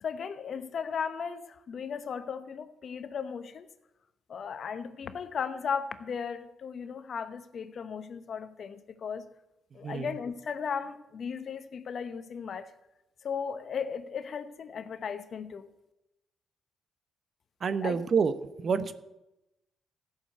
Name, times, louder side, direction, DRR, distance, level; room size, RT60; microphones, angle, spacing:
voice 1, 0.0-3.7 4.3-9.3 9.7-12.7 13.2-15.7 17.8-18.0, left 6 dB, 55° left, 12 dB, 0.9 m, -36 dB
voice 2, 17.6-18.4 18.6-18.9, right 5 dB, 50° right, 13 dB, 0.9 m, -27 dB
14.5 x 6.8 x 7.9 m, 0.94 s
cardioid pair, 90°, 0 cm